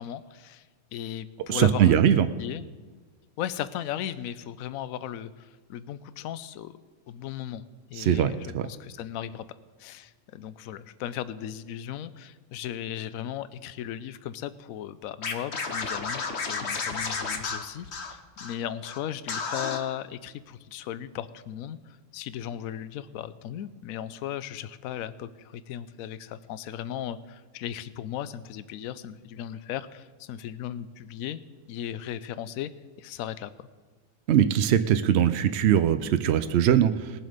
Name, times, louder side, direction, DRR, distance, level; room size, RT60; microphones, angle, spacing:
voice 1, 0.0-2.7 3.4-6.8 7.1-7.6 7.9-9.4 9.8-16.2 16.5-31.4 31.7-32.7 33.0-33.7, left 10 dB, 70° left, 15 dB, 1.0 m, -36 dB
voice 2, 1.5-2.3 8.0-8.3 8.5-8.7 34.3-37.1, right 9 dB, 75° right, 10 dB, 0.6 m, -21 dB
Scratching (performance technique), 15.2-18.5 18.8-19.0 19.3-19.8, left 4 dB, 45° left, 1.2 m, -32 dB
19.5 x 7.6 x 5.0 m, 1.4 s
omnidirectional pair, 1.7 m